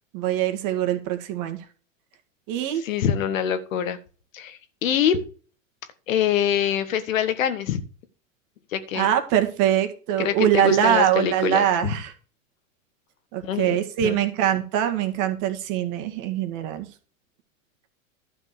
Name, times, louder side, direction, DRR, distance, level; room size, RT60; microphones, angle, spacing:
voice 1, 0.1-1.6 2.5-2.8 8.9-12.1 13.3-16.9, right 10 dB, 50° right, 6 dB, 2.0 m, -23 dB
voice 2, 2.7-4.0 4.3-5.2 6.1-7.8 8.7-9.1 10.2-11.9 13.4-14.2, left 9 dB, 80° left, 11 dB, 1.5 m, -25 dB
11.5 x 4.4 x 6.9 m, 0.38 s
hypercardioid pair, 110°, 40 cm